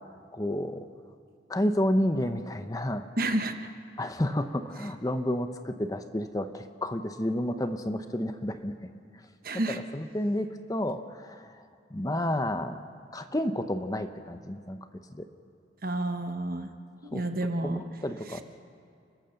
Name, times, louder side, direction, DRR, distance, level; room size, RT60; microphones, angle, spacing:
voice 1, 0.3-0.9 1.5-3.1 4.0-8.7 9.7-11.6 11.9-12.8 13.1-14.8 15.2-15.3 17.1-17.2 17.6-18.4, left 1 dB, 20° left, 8 dB, 0.7 m, -30 dB
voice 2, 3.2-3.7 9.4-9.8 15.8-16.7 17.0-17.8 18.3-18.4, right 1 dB, 50° right, 7 dB, 1.2 m, -30 dB
30.0 x 14.0 x 6.6 m, 2.5 s
head